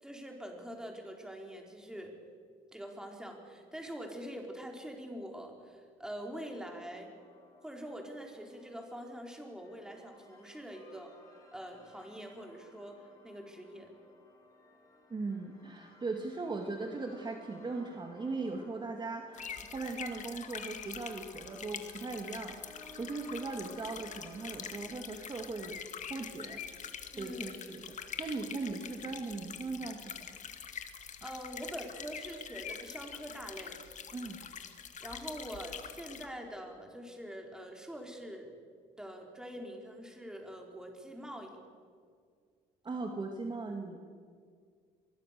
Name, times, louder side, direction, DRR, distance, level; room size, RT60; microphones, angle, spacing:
voice 1, 0.0-2.1 2.7-7.1 7.6-11.1 11.5-13.9 27.1-27.6 31.2-33.8 35.0-38.5 39.0-41.6, equal, 5° right, 2 dB, 4.4 m, -44 dB
sound 1, 6.2-24.8, left 2 dB, 20° left, 7.1 m, -59 dB
voice 2, 15.1-25.8 26.1-26.6 27.2-30.4 34.1-34.4 42.8-44.0, right 3 dB, 25° right, 3 dB, 2.2 m, -39 dB
sound 2, 19.3-36.3, left 7 dB, 45° left, 2.1 m, -45 dB
24.5 x 21.5 x 6.8 m, 2.1 s
cardioid pair, 110°, 17 cm